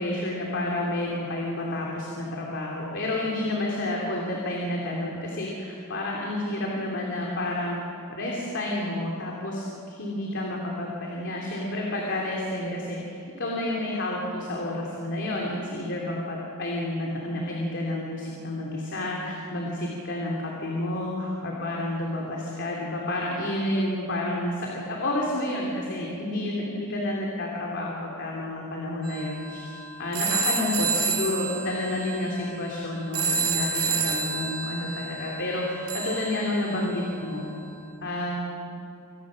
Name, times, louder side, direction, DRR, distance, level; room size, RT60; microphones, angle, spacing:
voice 1, 0.0-7.8 8.1-29.7 30.0-37.5 38.0-38.7, left 1 dB, 55° left, -2 dB, 3.0 m, -30 dB
sound 1, 29.0-37.1, right 4 dB, 70° right, 3.7 m, -30 dB
26.0 x 18.0 x 6.5 m, 2.9 s
head